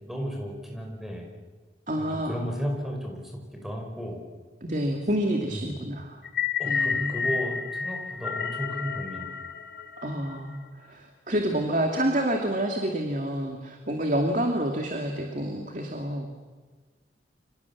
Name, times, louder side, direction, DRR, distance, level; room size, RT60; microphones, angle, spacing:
voice 1, 0.1-1.3 2.0-4.2 5.5-5.8 6.6-9.3, equal, ahead, 1 dB, 5.4 m, -34 dB
voice 2, 1.9-2.3 4.6-6.2 6.6-7.3 10.0-16.4, right 1 dB, 45° right, 2 dB, 2.6 m, -28 dB
sound 1, 6.2-10.6, left 6 dB, 55° left, 1.4 m, -30 dB
30.0 x 25.5 x 7.3 m, 1.4 s
head